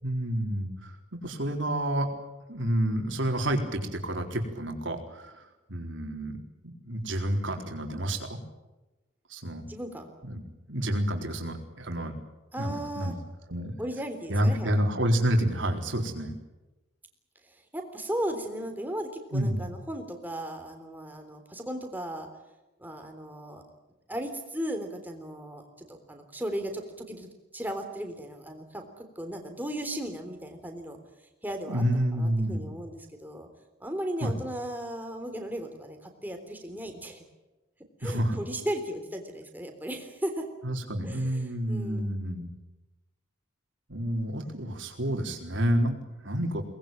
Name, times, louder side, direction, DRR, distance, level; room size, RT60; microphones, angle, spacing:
voice 1, 0.0-2.1 2.5-5.4 5.7-6.4 6.6-8.4 9.3-9.7 10.2-10.4 10.7-12.1 12.6-13.1 13.5-13.7 14.3-16.3 19.3-19.7 31.7-32.7 34.2-34.3 38.0-38.4 40.6-42.5 43.9-46.0 46.2-46.6, equal, 80° right, 3 dB, 4.1 m, -29 dB
voice 2, 9.6-10.1 12.5-13.2 13.8-14.9 17.4-22.3 22.8-23.6 24.1-27.3 27.5-31.0 31.4-33.5 33.8-37.2 38.0-40.4 41.0-42.1, right 1 dB, 10° right, 4 dB, 3.5 m, -36 dB
23.5 x 20.0 x 9.2 m, 1.1 s
head